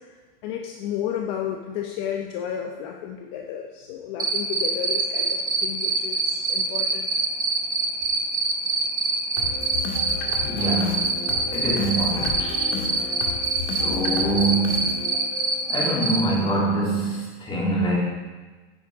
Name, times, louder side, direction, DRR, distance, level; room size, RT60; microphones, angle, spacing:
voice 1, 0.4-7.1, left 9 dB, 50° left, 2 dB, 0.9 m, -32 dB
Cricket, 4.2-16.2, right 4 dB, 10° right, 1.2 m, -23 dB
sound 1, 9.4-17.3, left 5 dB, 85° left, 2.0 m, -34 dB
voice 2, 10.4-11.0 11.5-12.6 13.7-15.0 15.7-18.0, right 2 dB, 20° left, -5 dB, 3.2 m, -24 dB
10.0 x 9.8 x 3.6 m, 1.3 s
supercardioid pair, 140°, 29 cm